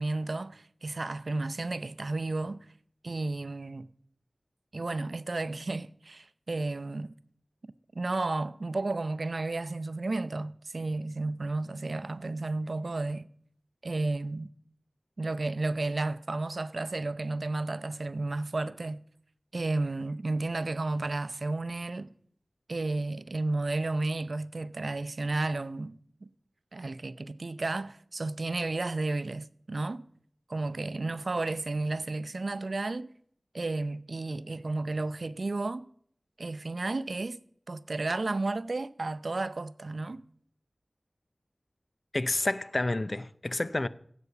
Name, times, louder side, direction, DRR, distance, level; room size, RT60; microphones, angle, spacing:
voice 1, 0.0-2.6 3.0-3.9 4.7-7.1 7.9-13.3 13.8-14.5 15.2-19.0 19.5-22.1 22.7-26.3 26.7-30.0 30.5-33.1 33.5-35.8 36.4-37.4 37.7-40.2, right 2 dB, 70° right, 0.6 m, -32 dB
voice 2, 42.1-43.9, left 2 dB, 50° left, 0.6 m, -29 dB
16.0 x 8.2 x 6.8 m
wide cardioid pair, 55°, 0 cm